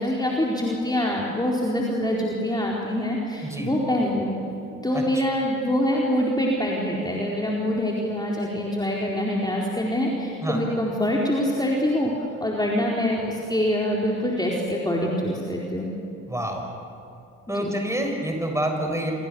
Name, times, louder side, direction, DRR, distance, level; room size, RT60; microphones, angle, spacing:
voice 1, 0.0-4.4 4.8-12.1 12.4-15.9 17.5-17.8, left 1 dB, 10° left, -3 dB, 4.3 m, -25 dB
voice 2, 3.4-3.7 4.9-5.2 10.4-10.6 16.3-16.6 17.5-19.1, right 1 dB, 5° right, 2 dB, 6.5 m, -27 dB
29.0 x 27.0 x 7.1 m, 2.6 s
figure-of-eight pair, 50°, 40 cm